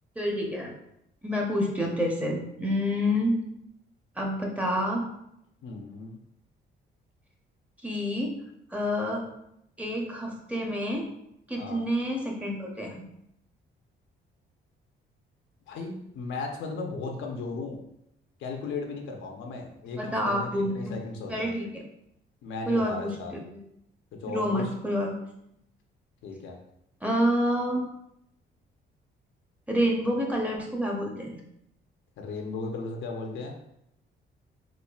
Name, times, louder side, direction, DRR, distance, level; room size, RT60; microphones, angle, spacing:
voice 1, 0.2-0.7 1.2-3.4 4.2-5.0 7.8-8.3 8.7-9.2 9.8-11.1 11.5-12.9 20.0-21.0 21.3-21.8 22.7-23.6 24.3-25.1 27.0-27.9 29.7-31.4, equal, 5° right, -1 dB, 0.7 m, -28 dB
voice 2, 5.6-6.2 11.6-11.8 15.7-17.8 18.4-21.5 22.4-23.3 24.2-24.7 26.2-26.6 32.2-33.5, left 3 dB, 75° left, 2 dB, 0.7 m, -36 dB
4.2 x 2.5 x 2.4 m, 0.78 s
cardioid pair, 90°, 20 cm